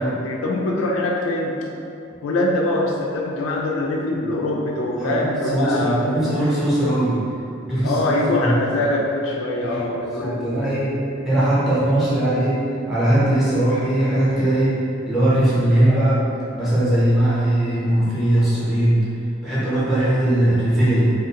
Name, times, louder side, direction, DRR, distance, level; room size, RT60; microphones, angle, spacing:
voice 1, 0.0-1.6 2.2-6.4 7.8-10.8, left 1 dB, 85° left, -2 dB, 0.4 m, -23 dB
voice 2, 5.0-7.2 7.6-8.1 8.4-8.5 9.5-11.0 11.2-12.6 12.9-14.8 15.1-16.2 16.5-19.0 19.4-21.1, right 1 dB, ahead, -10 dB, 0.7 m, -20 dB
2.5 x 2.5 x 2.8 m, 2.6 s
head